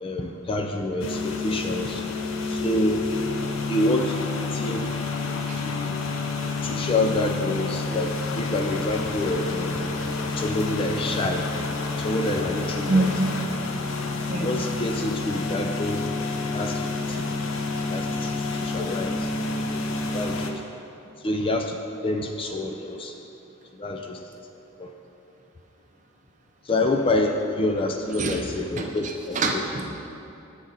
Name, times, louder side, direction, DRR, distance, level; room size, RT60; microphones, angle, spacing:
voice 1, 0.0-2.0 2.5-3.1 3.7-4.2 4.5-4.9 5.6-6.1 6.6-9.8 10.3-11.5 12.0-13.1 14.2-16.1 16.5-17.3 17.9-19.3 19.7-20.6 21.2-21.8 22.0-23.1 23.8-24.2 24.8-24.9 26.7-29.6, left 1 dB, 25° left, 4 dB, 0.3 m, -27 dB
sound 1, 1.0-20.5, left 3 dB, 75° left, 0.6 m, -29 dB
voice 2, 12.9-13.3 14.3-14.5 28.2-28.4 28.8-28.9 29.3-30.0, right 2 dB, 35° right, 2 dB, 0.6 m, -24 dB
7.3 x 6.3 x 4.0 m, 2.9 s
head